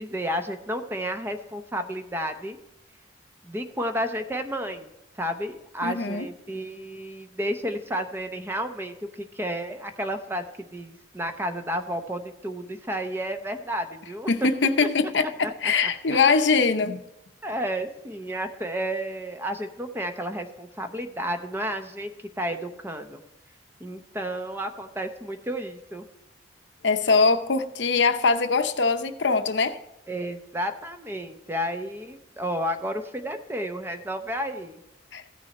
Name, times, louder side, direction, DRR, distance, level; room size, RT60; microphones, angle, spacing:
voice 1, 0.0-2.6 3.4-4.9 5.2-10.4 10.7-14.3 15.4-16.4 17.4-23.2 23.8-26.0 30.1-34.8, equal, 15° right, 7 dB, 0.8 m, -32 dB
voice 2, 5.8-6.3 14.3-17.0 26.8-29.8 35.1-35.2, left 4 dB, 70° left, 9 dB, 0.8 m, -22 dB
15.0 x 6.2 x 4.2 m, 0.88 s
head